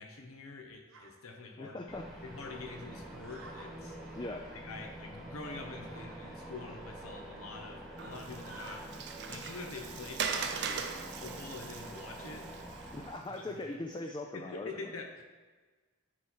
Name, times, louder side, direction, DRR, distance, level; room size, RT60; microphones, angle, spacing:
voice 1, 0.0-1.8 2.2-4.2 4.5-8.9 9.3-12.5 13.3-13.6 14.3-15.2, left 3 dB, 80° left, 3 dB, 1.1 m, -46 dB
sound 1, 0.9-1.1 2.1-2.3 3.2-3.7 4.2-4.6 5.8-6.2 6.8-6.9 7.1-7.3 8.2-8.9 9.6-10.0 10.5-10.8, right 2 dB, 80° right, 1.1 m, -53 dB
voice 2, 1.6-2.1 4.2-4.4 12.9-15.0, left 2 dB, 20° left, 3 dB, 0.4 m, -40 dB
sound 2, 1.9-13.1, right 1 dB, ahead, 1.3 m, -46 dB
Water, 8.0-13.4, right 6 dB, 55° right, 0.6 m, -40 dB
10.5 x 4.5 x 4.6 m, 1.4 s
head